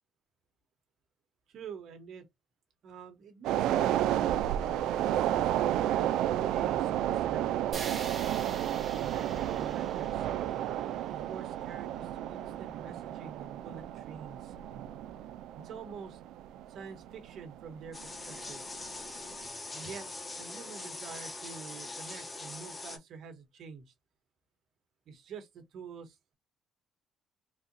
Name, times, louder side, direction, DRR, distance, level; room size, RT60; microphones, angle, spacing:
voice 1, 1.5-2.3 2.8-7.6 8.9-10.3 11.1-14.5 15.5-16.2 16.7-18.6 19.7-20.1 20.4-23.9 25.1-26.3, right 6 dB, 65° right, 1.3 m, -47 dB
sound 1, 3.4-18.0 18.4-18.5, right 12 dB, 85° right, 0.3 m, -32 dB
sound 2, 7.7-11.8, right 4 dB, 35° right, 1.5 m, -45 dB
sound 3, 17.9-23.0, left 2 dB, 20° left, 1.0 m, -42 dB
3.9 x 2.9 x 2.6 m
cardioid pair, 125°, 0 cm